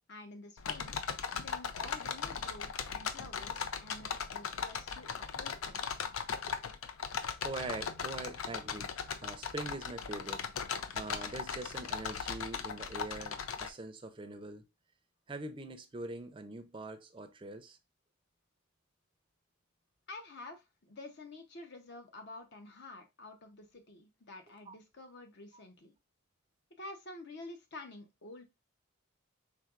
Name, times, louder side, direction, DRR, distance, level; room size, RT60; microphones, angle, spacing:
voice 1, 0.1-1.0 1.4-5.8 20.1-25.9 26.8-28.4, left 2 dB, 55° left, 0.8 m, -49 dB
sound 1, 0.6-13.7, left 6 dB, 75° left, 0.5 m, -38 dB
voice 2, 7.4-8.9 9.2-10.4 10.9-14.7 15.3-17.8 24.7-24.8, right 2 dB, 25° right, 0.5 m, -43 dB
4.5 x 3.5 x 2.4 m
head